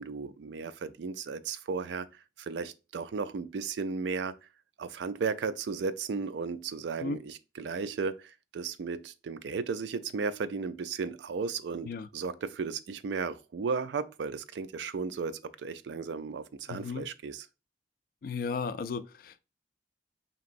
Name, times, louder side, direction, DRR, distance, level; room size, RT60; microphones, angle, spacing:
voice 1, 0.0-2.1 2.4-4.3 4.8-17.4, right 5 dB, 80° right, 0.4 m, -35 dB
voice 2, 16.7-17.1 18.2-19.5, left 4 dB, 55° left, 0.3 m, -35 dB
5.2 x 2.9 x 2.5 m
head